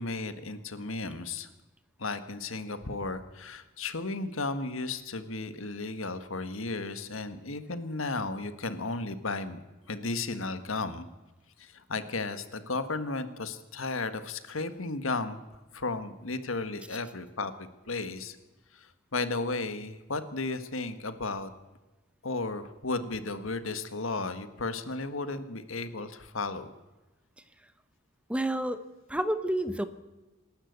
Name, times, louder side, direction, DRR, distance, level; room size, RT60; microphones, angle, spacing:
voice 1, 0.0-1.5 2.0-9.6 9.9-11.1 11.6-15.4 15.7-17.5 17.9-18.4 18.7-21.5 22.2-26.7, left 3 dB, 80° left, 10 dB, 1.7 m, -34 dB
voice 2, 28.3-28.8 29.1-29.9, right 1 dB, 5° right, 11 dB, 1.0 m, -29 dB
26.5 x 12.5 x 8.1 m, 1.1 s
head